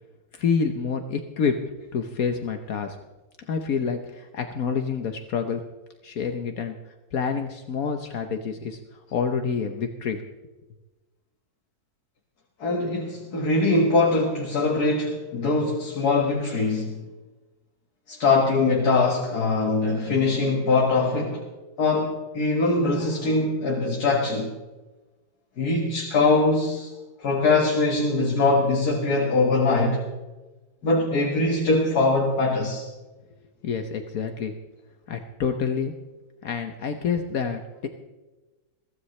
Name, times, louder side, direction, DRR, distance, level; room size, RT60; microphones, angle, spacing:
voice 1, 0.3-1.6 1.9-3.0 3.5-5.6 6.0-6.8 7.1-8.8 9.1-10.2 33.6-34.5 35.1-35.9 36.4-37.9, left 6 dB, 70° left, 6 dB, 1.4 m, -27 dB
voice 2, 12.6-16.9 18.1-21.5 21.8-24.5 25.6-26.9 27.2-30.0 30.8-32.9, left 3 dB, 90° left, -1 dB, 2.2 m, -22 dB
22.5 x 15.5 x 3.2 m, 1.2 s
omnidirectional pair, 1.6 m